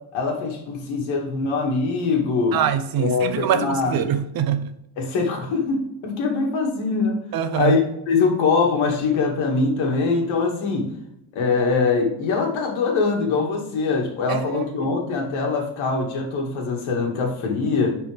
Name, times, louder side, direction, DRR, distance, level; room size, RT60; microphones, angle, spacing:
voice 1, 0.1-2.6 3.0-4.0 5.0-7.2 7.5-7.8 8.1-11.0 11.3-18.0, left 4 dB, 75° left, 2.4 m, -23 dB
voice 2, 2.5-4.7 7.3-7.8 14.3-14.9, right 9 dB, 50° right, 0.8 m, -24 dB
10.0 x 4.7 x 3.5 m
cardioid pair, 160°, 47 cm